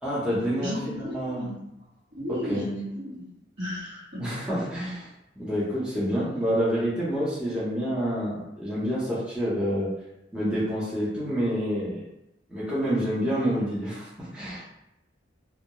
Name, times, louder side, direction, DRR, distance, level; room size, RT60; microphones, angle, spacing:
voice 1, 0.0-1.5 2.3-2.7 4.2-5.1 5.4-9.9 10.3-12.0 12.5-14.7, equal, 5° right, -10 dB, 0.6 m, -28 dB
voice 2, 0.6-1.6 2.1-3.3 3.6-4.3, left 1 dB, 65° right, -8 dB, 1.0 m, -34 dB
2.2 x 2.0 x 2.8 m, 0.87 s
head